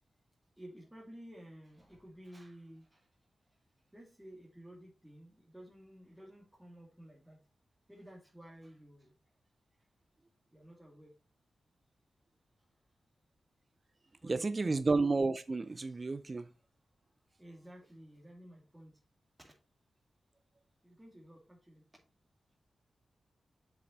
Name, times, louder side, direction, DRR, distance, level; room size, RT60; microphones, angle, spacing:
voice 1, 0.6-3.1 3.5-3.6 3.9-7.4 7.9-9.1 9.8-9.9 10.5-11.1 14.0-14.8 16.2-16.5 17.3-19.0 19.4-19.5 20.8-21.8, equal, 10° right, 2.8 m, -54 dB
voice 2, 14.3-16.5, right 3 dB, 45° right, 0.5 m, -31 dB
7.6 x 6.0 x 4.1 m
cardioid pair, 45°, 0 cm